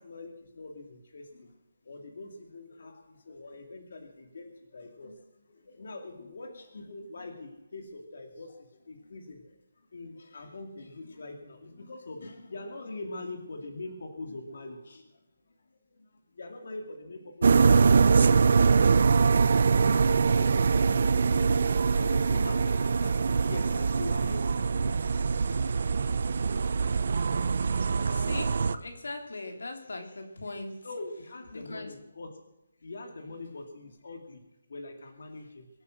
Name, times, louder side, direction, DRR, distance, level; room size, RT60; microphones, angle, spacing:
voice 1, 0.0-1.6 1.8-9.6 9.9-15.2 15.5-25.0 30.8-32.3 32.8-34.4 34.7-35.7, left 2 dB, 55° left, 3 dB, 2.5 m, -43 dB
sound 1, 17.4-28.8, right 5 dB, 45° right, 0.6 m, -23 dB
voice 2, 28.1-30.9 31.5-31.9 35.4-35.5, left 2 dB, 90° left, 4 dB, 3.3 m, -40 dB
23.0 x 9.2 x 6.4 m, 0.89 s
hypercardioid pair, 175°, 0 cm